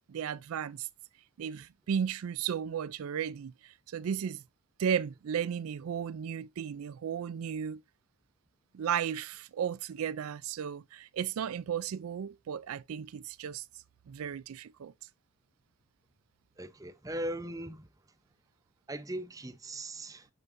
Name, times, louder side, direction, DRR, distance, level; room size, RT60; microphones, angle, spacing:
voice 1, 0.1-0.9 1.4-4.4 4.8-7.8 8.7-13.6 14.1-14.9, right 8 dB, 85° right, 0.4 m, -34 dB
voice 2, 16.6-17.9 18.9-20.3, right 1 dB, 15° right, 0.7 m, -39 dB
7.2 x 6.7 x 2.6 m
head